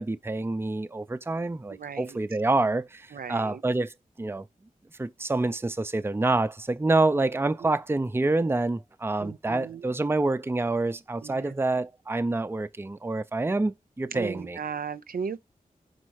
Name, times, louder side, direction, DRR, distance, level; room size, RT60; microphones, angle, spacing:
voice 1, 0.0-4.5 5.0-14.6, right 2 dB, 15° right, 0.5 m, -27 dB
voice 2, 1.7-2.2 3.1-3.6 6.9-7.0 7.6-7.7 9.2-9.9 11.2-11.5 14.1-15.4, right 6 dB, 80° right, 0.6 m, -36 dB
5.3 x 4.3 x 4.6 m
wide cardioid pair, 70°, 15 cm